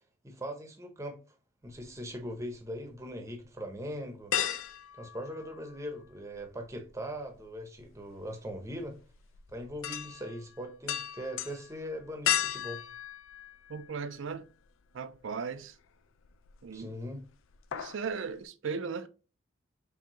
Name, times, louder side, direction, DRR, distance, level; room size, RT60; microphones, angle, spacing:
voice 1, 0.2-1.2 1.6-4.3 5.0-9.0 9.5-12.8 16.7-17.2, equal, 15° right, 0.7 m, -40 dB
sound 1, 1.7-2.7 3.1-3.2 4.3-6.0 6.3-14.2 14.6-14.7 16.2-16.8 17.0-17.3 17.5-18.1 18.4-18.5, left 11 dB, 75° left, 0.4 m, -36 dB
voice 2, 13.7-14.4 14.9-15.7 16.6-16.9 17.7-19.1, right 5 dB, 70° right, 0.4 m, -37 dB
4.6 x 3.4 x 2.9 m
head